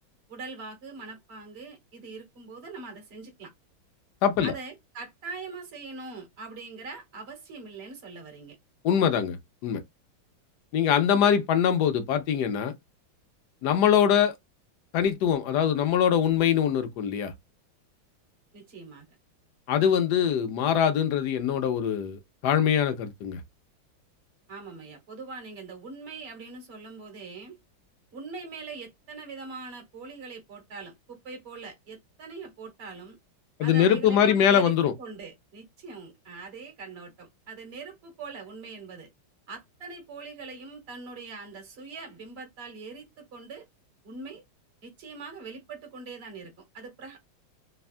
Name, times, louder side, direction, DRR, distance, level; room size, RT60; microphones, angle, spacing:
voice 1, 0.3-3.5 4.4-8.6 18.5-19.0 24.5-27.6 28.1-33.2 33.6-39.1 39.5-43.7 44.0-44.4 44.8-47.2, right 4 dB, 35° right, 1.2 m, -42 dB
voice 2, 4.2-4.5 8.8-9.4 9.6-9.8 10.7-12.7 13.6-14.3 14.9-17.3 19.7-23.4 33.6-34.9, left 8 dB, 75° left, 1.0 m, -23 dB
3.5 x 2.2 x 2.3 m
omnidirectional pair, 2.2 m